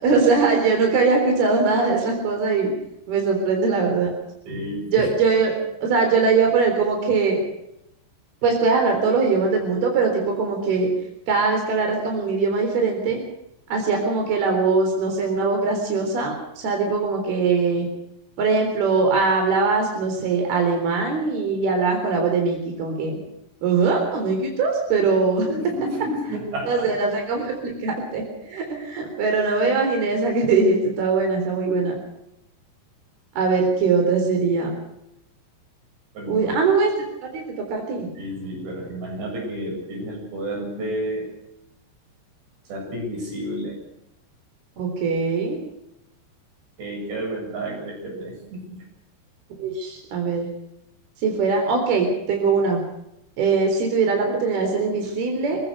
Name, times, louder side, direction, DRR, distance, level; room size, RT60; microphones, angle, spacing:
voice 1, 0.0-2.7 3.1-4.1 4.9-5.5 5.8-7.4 8.4-10.9 11.3-13.2 13.7-17.9 18.4-23.2 23.6-25.5 26.7-32.0 33.4-34.7 36.3-36.9 37.2-37.4 37.7-38.1 44.8-45.6 49.6-50.5 51.2-52.8 53.4-55.6, right 4 dB, 65° right, 2 dB, 5.6 m, -21 dB
voice 2, 4.5-5.1 25.4-26.9 27.4-27.5 36.1-36.5 38.2-41.3 42.7-43.8 46.8-48.8, right 1 dB, 80° right, 0 dB, 10.0 m, -31 dB
27.5 x 15.5 x 6.8 m, 0.82 s
omnidirectional pair, 4.9 m